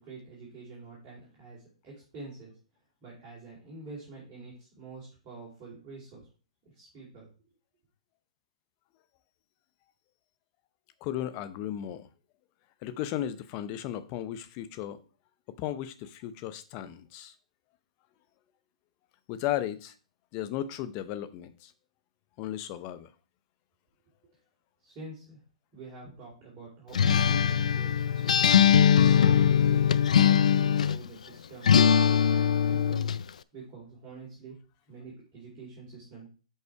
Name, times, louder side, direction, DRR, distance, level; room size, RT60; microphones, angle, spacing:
voice 1, 0.0-2.6 3.0-6.3 6.6-7.3 24.8-25.4 25.7-28.8 29.2-29.8 30.1-33.1 33.5-34.6 34.9-36.3, right 3 dB, 25° right, 3.6 m, -46 dB
voice 2, 11.0-12.1 12.8-15.0 15.5-17.3 19.3-19.9 20.3-21.7 22.4-23.1, left 12 dB, 30° left, 0.8 m, -35 dB
Acoustic guitar, 26.9-31.1 31.7-33.2, left 8 dB, 75° left, 0.4 m, -21 dB
6.1 x 5.6 x 4.7 m
hypercardioid pair, 145°, 4 cm